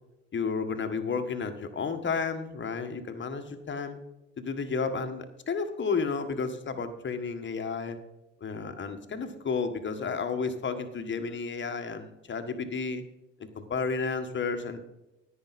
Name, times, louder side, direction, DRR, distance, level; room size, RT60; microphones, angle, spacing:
voice 1, 0.3-4.0 4.4-8.0 8.4-13.0 13.5-14.8, left 5 dB, 35° left, 7 dB, 1.5 m, -32 dB
10.5 x 9.6 x 4.2 m, 0.95 s
hypercardioid pair, 65°, 35 cm